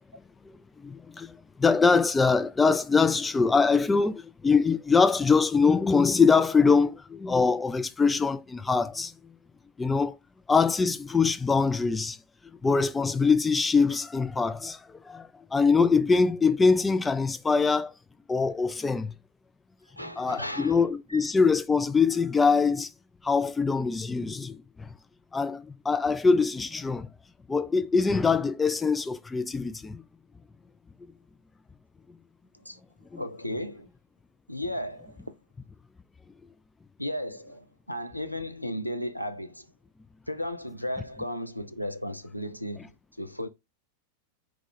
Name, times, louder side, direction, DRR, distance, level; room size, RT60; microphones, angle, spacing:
voice 1, 0.5-9.1 9.8-10.2 10.5-12.2 12.6-17.9 18.3-19.1 20.2-22.9 23.2-24.9 25.3-27.1 27.5-30.0 33.1-33.2, left 4 dB, 10° left, 0.3 m, -23 dB
voice 2, 20.0-20.8 21.1-21.2 32.6-32.8 33.2-33.9 34.5-35.4 37.0-39.7 40.3-43.5, left 1 dB, 90° left, 0.4 m, -35 dB
4.6 x 2.4 x 3.8 m
figure-of-eight pair, 90°, 0 cm